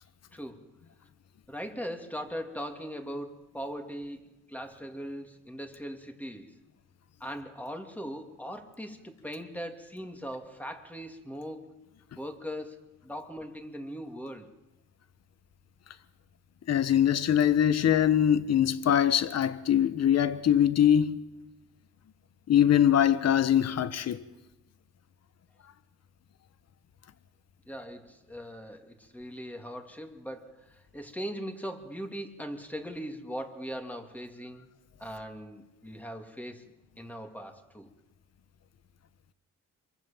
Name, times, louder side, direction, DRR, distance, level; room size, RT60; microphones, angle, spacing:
voice 1, 0.3-0.7 1.5-6.6 7.2-11.8 12.2-14.5 27.7-34.7 35.0-36.6 37.0-37.9, equal, 5° left, 3.1 m, -40 dB
voice 2, 16.7-21.2 22.5-24.2, left 10 dB, 55° left, 1.4 m, -23 dB
27.5 x 23.5 x 7.4 m
cardioid pair, 90°, 30 cm